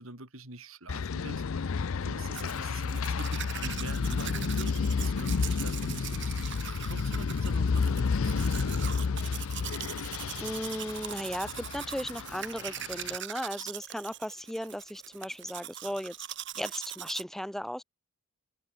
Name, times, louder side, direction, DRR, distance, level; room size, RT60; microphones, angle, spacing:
voice 1, 0.0-9.3, right 2 dB, 70° right, 5.1 m, -46 dB
sound 1, 0.9-13.2, left 5 dB, 70° left, 0.5 m, -31 dB
Domestic sounds home sounds, 2.3-17.2, right 11 dB, 55° right, 3.8 m, -41 dB
voice 2, 10.4-16.3 16.5-17.8, equal, ahead, 5.3 m, -36 dB
head